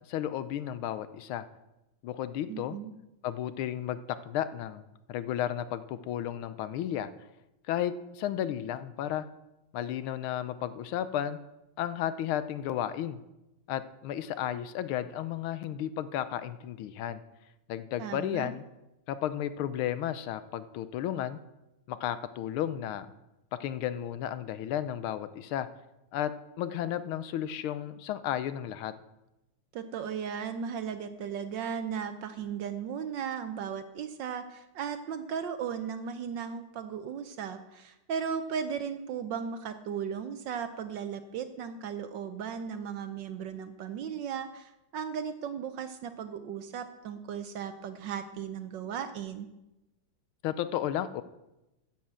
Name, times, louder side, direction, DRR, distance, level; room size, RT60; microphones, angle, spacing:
voice 1, 0.1-1.5 2.0-2.8 3.2-4.0 4.2-4.8 5.1-7.1 7.7-9.2 9.7-11.4 11.8-13.2 13.7-17.2 17.7-18.6 19.1-21.4 21.9-23.1 23.6-25.7 26.1-26.3 26.6-28.9 50.4-51.2, left 11 dB, 75° left, 13 dB, 1.5 m, -33 dB
voice 2, 2.5-2.9 18.0-18.5 29.7-49.5, right 7 dB, 70° right, 10 dB, 1.2 m, -36 dB
10.5 x 7.5 x 7.4 m, 0.95 s
omnidirectional pair, 2.4 m